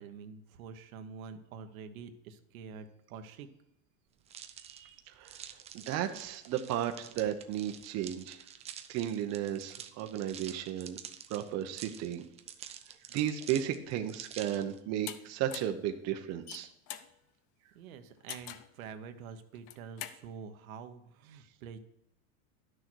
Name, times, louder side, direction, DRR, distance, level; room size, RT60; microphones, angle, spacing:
voice 1, 0.0-3.5 17.7-21.8, right 6 dB, 80° right, 8 dB, 1.1 m, -47 dB
sound 1, 4.3-14.8, right 9 dB, 15° right, 0.4 m, -48 dB
voice 2, 4.6-5.4 5.7-8.4 8.9-11.0 11.3-12.2 13.1-16.7, right 11 dB, 40° right, 6 dB, 0.8 m, -34 dB
sound 2, 15.1-15.2 15.5-15.8 16.3-17.1 18.3-18.7 19.5-20.2, left 11 dB, 45° left, 0.7 m, -43 dB
11.5 x 6.5 x 4.6 m, 0.81 s
supercardioid pair, 140°, 41 cm